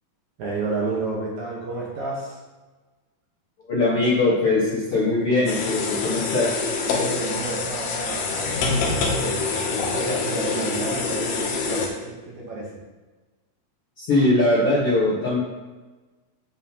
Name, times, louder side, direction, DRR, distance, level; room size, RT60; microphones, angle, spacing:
voice 1, 0.4-2.4 6.8-12.7, right 2 dB, 65° right, -4 dB, 2.1 m, -30 dB
voice 2, 3.7-6.6 14.0-15.4, left 2 dB, 60° left, -8 dB, 1.5 m, -21 dB
sound 1, 5.5-11.9, left 4 dB, 85° left, 2.8 m, -26 dB
7.4 x 7.4 x 2.8 m, 1.2 s
omnidirectional pair, 4.2 m